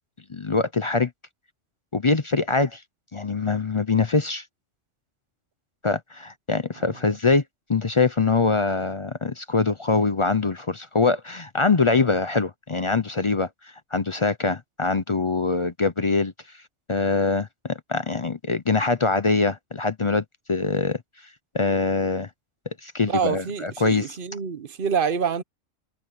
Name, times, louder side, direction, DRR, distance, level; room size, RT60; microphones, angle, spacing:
voice 1, 0.3-1.1 1.9-2.8 3.1-4.4 5.8-7.4 7.7-13.5 13.9-16.3 16.9-21.0 21.5-22.3 22.8-24.2, left 4 dB, 35° left, 0.5 m, -23 dB
voice 2, 23.1-25.4, right 6 dB, 50° right, 1.0 m, -26 dB
omnidirectional pair, 1.3 m